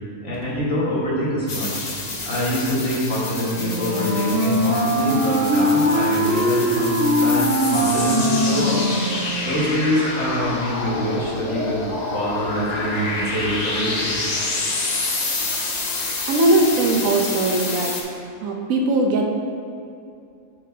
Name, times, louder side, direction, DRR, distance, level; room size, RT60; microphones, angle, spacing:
voice 1, 0.2-1.9 2.2-8.8 9.4-14.2, equal, 60° left, -7 dB, 2.0 m, -25 dB
sound 1, 1.5-18.0, left 2 dB, 40° left, 0.7 m, -28 dB
Wind instrument woodwind instrument, 3.5-9.5, equal, 5° right, 1.0 m, -21 dB
voice 2, 16.3-17.9 18.4-19.3, right 2 dB, 75° right, 1 dB, 1.1 m, -19 dB
8.1 x 5.8 x 2.8 m, 2.5 s
omnidirectional pair, 1.4 m